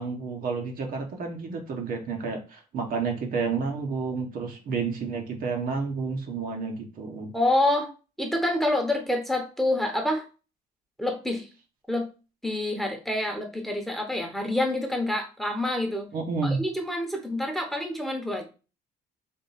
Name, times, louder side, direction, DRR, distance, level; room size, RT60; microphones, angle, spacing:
voice 1, 0.0-7.3 16.1-16.6, right 4 dB, 55° right, 2 dB, 1.2 m, -30 dB
voice 2, 7.3-7.9 8.2-10.2 11.0-11.5 11.9-12.1 12.4-16.1 16.4-18.5, left 1 dB, ahead, 3 dB, 1.0 m, -27 dB
3.7 x 2.7 x 4.1 m, 0.32 s
cardioid pair, 110°, 17 cm